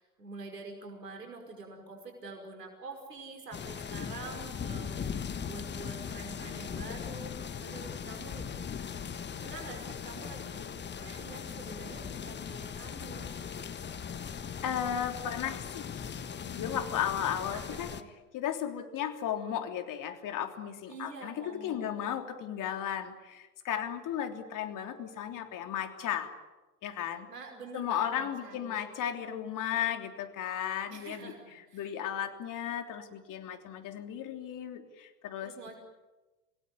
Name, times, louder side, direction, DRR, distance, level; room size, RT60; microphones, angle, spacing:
voice 1, 0.0-8.5 9.4-13.7 17.5-18.1 20.9-22.1 27.3-28.8 30.9-31.9 35.4-35.8, right 3 dB, 90° right, 3 dB, 5.4 m, -46 dB
sound 1, 3.5-18.0, left 7 dB, 20° left, 1.5 m, -39 dB
voice 2, 14.6-16.1 16.4-17.9 18.3-26.3 26.8-27.3 27.7-31.3 31.7-35.8, left 9 dB, 40° left, 7 dB, 3.3 m, -35 dB
27.5 x 18.5 x 9.8 m, 1.1 s
hypercardioid pair, 90°, 47 cm